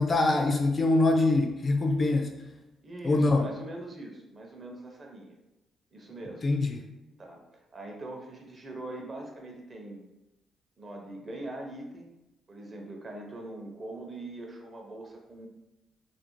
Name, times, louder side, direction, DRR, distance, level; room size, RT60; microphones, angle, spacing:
voice 1, 0.0-2.3 3.0-3.5 6.4-6.8, left 2 dB, 35° left, 4 dB, 0.3 m, -24 dB
voice 2, 2.8-5.4 5.9-6.5 7.2-7.4 7.7-10.0 10.8-12.1 12.5-15.5, right 1 dB, 35° right, 1 dB, 0.5 m, -42 dB
2.4 x 2.0 x 3.0 m, 0.95 s
cardioid pair, 90°, 0 cm